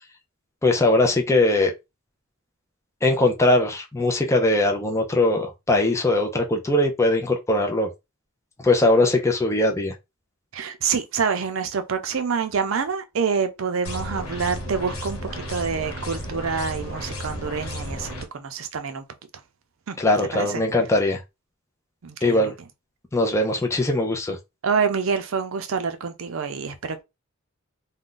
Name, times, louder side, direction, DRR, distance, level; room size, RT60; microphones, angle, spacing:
voice 1, 0.6-1.7 3.0-7.9 8.6-9.9 20.0-21.2 22.2-22.5 23.1-24.4, left 2 dB, 15° left, 0.4 m, -20 dB
voice 2, 10.5-19.0 19.9-20.0 20.3-20.6 22.0-22.5 24.6-27.0, right 6 dB, 70° right, 0.5 m, -27 dB
sound 1, 13.8-18.2, equal, 85° left, 1.0 m, -33 dB
2.5 x 2.2 x 3.7 m
head